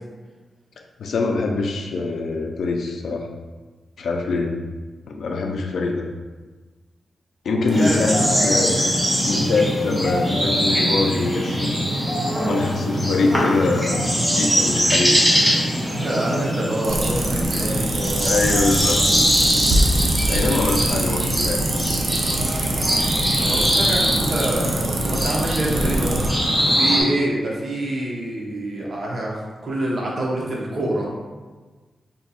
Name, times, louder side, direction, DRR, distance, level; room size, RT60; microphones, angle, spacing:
voice 1, 1.0-3.3 4.0-4.6 5.1-6.1 7.4-8.8 9.2-11.7 12.4-14.0 14.3-15.2 15.5-15.6 18.2-19.0 20.3-21.7, left 3 dB, 80° left, 2 dB, 0.3 m, -23 dB
voice 2, 7.6-8.7 15.9-18.4 23.3-26.2 26.7-31.1, right 1 dB, 45° right, -3 dB, 0.7 m, -26 dB
sound 1, 7.7-27.0, equal, 10° right, 0.8 m, -22 dB
sound 2, 16.8-26.3, right 2 dB, 75° right, 0.4 m, -25 dB
2.7 x 2.3 x 4.1 m, 1.3 s
wide cardioid pair, 150°, 0 cm